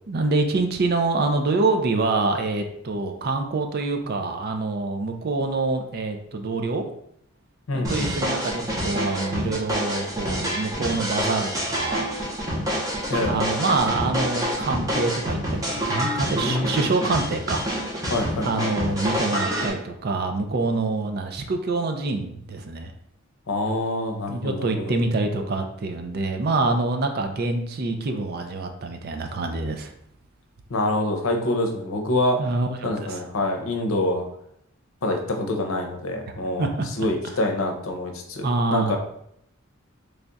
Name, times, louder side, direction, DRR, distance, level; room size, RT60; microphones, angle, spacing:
voice 1, 0.1-6.8 7.7-12.2 13.3-17.7 17.9-18.1 18.4-22.9 24.3-29.9 32.4-33.2 36.6-36.9 38.4-39.0, right 3 dB, 50° right, 5 dB, 0.5 m, -26 dB
voice 2, 7.7-8.1 13.1-13.5 16.4-16.8 18.1-18.7 23.5-24.9 30.7-32.4 32.8-34.2 35.0-36.7 37.0-39.0, left 2 dB, 80° left, 3 dB, 0.7 m, -26 dB
sound 1, 7.8-19.7, equal, 15° right, 0.8 m, -27 dB
3.3 x 2.4 x 3.9 m, 0.72 s
head